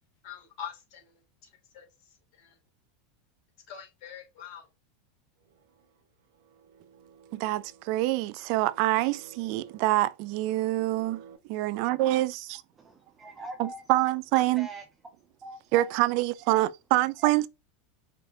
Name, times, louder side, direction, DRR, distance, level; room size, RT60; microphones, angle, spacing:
voice 1, 0.2-1.0 1.7-1.9 2.4-2.5 3.7-4.7, left 8 dB, 55° left, 2.5 m, -43 dB
sound 1, 5.4-11.4, right 7 dB, 85° right, 1.0 m, -54 dB
voice 2, 7.3-11.2 11.5-12.6 13.6-14.7 15.7-17.5, right 17 dB, 60° right, 0.5 m, -26 dB
voice 3, 12.8-13.8 14.3-14.8 15.4-16.0 17.2-17.3, right 1 dB, 20° right, 0.8 m, -43 dB
5.1 x 3.2 x 2.7 m
supercardioid pair, 115°, 0 cm